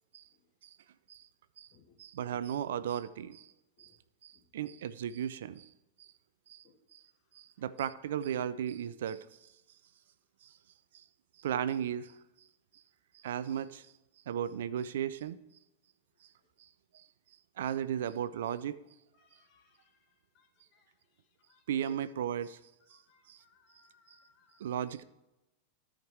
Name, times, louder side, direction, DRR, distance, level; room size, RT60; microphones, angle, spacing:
voice 1, 2.0-3.5 3.8-3.9 4.2-5.7 6.0-6.1 6.5-6.6 6.9-7.0 7.3-9.3 10.9-11.0 11.4-12.2 13.2-13.9 14.3-15.4 16.9-17.0 17.6-18.8 21.7-22.6 23.3-23.4 24.6-25.0, right 9 dB, 60° right, 15 dB, 0.4 m, -35 dB
voice 2, 23.1-24.6, left 6 dB, 40° left, 5 dB, 1.6 m, -66 dB
13.5 x 5.1 x 4.5 m, 0.94 s
figure-of-eight pair, 90°, 0 cm